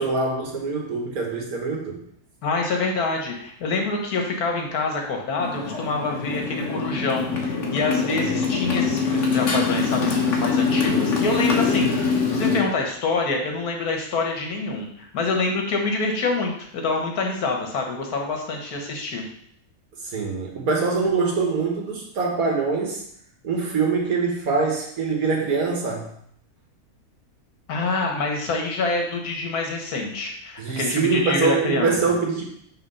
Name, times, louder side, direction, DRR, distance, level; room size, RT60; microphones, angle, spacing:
voice 1, 0.0-2.0 8.6-8.8 20.0-23.0 23.4-26.1 30.6-32.4, right 4 dB, 70° right, 0 dB, 1.7 m, -24 dB
voice 2, 2.4-19.2 27.7-31.9, left 3 dB, 80° left, 2 dB, 1.6 m, -26 dB
Motorcycle, 5.4-12.6, left 4 dB, 55° left, 1.3 m, -23 dB
5.8 x 3.5 x 5.5 m, 0.68 s
omnidirectional pair, 1.6 m